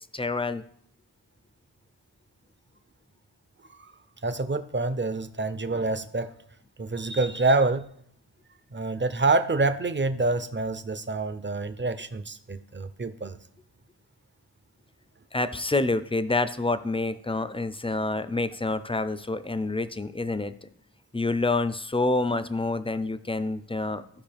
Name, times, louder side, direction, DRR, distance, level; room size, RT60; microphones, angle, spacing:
voice 1, 0.1-0.6 15.3-20.7 21.1-24.0, left 2 dB, 15° left, 13 dB, 0.5 m, -27 dB
voice 2, 4.2-6.3 6.8-7.9 8.7-13.4, right 3 dB, 25° right, 11 dB, 0.6 m, -27 dB
15.0 x 5.1 x 3.5 m, 0.66 s
wide cardioid pair, 45°, 42 cm